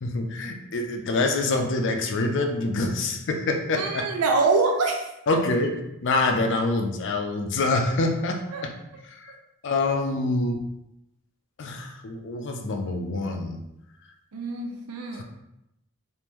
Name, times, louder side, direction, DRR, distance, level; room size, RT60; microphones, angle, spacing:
voice 1, 0.0-4.1 5.3-5.7 6.0-8.7 9.2-9.3 9.6-10.6 11.6-13.6 15.1-15.2, left 2 dB, 55° left, 4 dB, 0.4 m, -26 dB
voice 2, 3.7-5.4 8.5-8.6 14.3-15.2, right 3 dB, 75° right, 2 dB, 0.5 m, -25 dB
3.5 x 2.5 x 3.0 m, 0.88 s
head